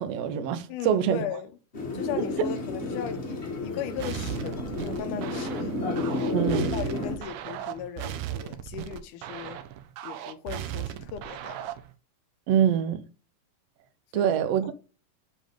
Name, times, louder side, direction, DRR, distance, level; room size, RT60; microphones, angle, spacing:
voice 1, 0.0-1.2 6.3-6.7 12.5-13.0 14.1-14.7, right 9 dB, 70° right, 1.6 m, -25 dB
voice 2, 0.7-1.5 1.9-5.7 6.7-9.6 10.0-11.7 14.1-14.4, left 9 dB, 80° left, 2.4 m, -37 dB
sound 1, 1.7-7.2, left 2 dB, 35° left, 1.1 m, -31 dB
sound 2, 4.0-11.9, right 11 dB, 90° right, 2.4 m, -37 dB
7.2 x 5.2 x 3.7 m
omnidirectional pair, 3.7 m